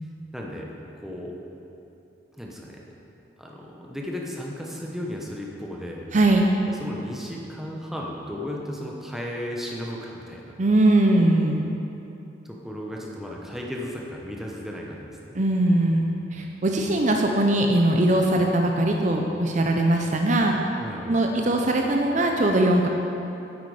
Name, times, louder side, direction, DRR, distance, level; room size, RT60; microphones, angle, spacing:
voice 1, 0.3-0.7 1.0-1.4 2.4-2.8 3.4-6.1 6.8-10.6 12.4-15.4 20.8-21.1, left 1 dB, ahead, -2 dB, 1.0 m, -35 dB
voice 2, 6.1-6.5 10.6-11.6 15.3-16.1 16.3-20.6 21.1-22.9, right 1 dB, 40° right, 2 dB, 0.6 m, -21 dB
9.4 x 8.4 x 4.9 m, 2.9 s
head